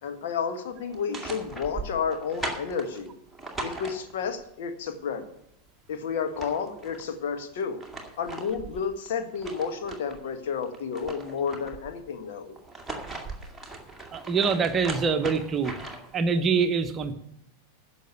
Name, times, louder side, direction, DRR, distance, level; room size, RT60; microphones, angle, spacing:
voice 1, 0.0-3.1 3.6-5.3 5.9-7.8 8.2-12.5, left 6 dB, 55° left, 6 dB, 1.5 m, -31 dB
sound 1, 0.9-4.4 5.9-6.0 6.2-7.1 7.6-10.2 10.6-12.0 12.6-16.2, right 2 dB, 5° right, 2.1 m, -39 dB
voice 2, 14.1-15.7 16.1-17.1, right 5 dB, 25° right, 9 dB, 1.0 m, -24 dB
10.5 x 6.5 x 8.9 m, 0.77 s
figure-of-eight pair, 90°, 0 cm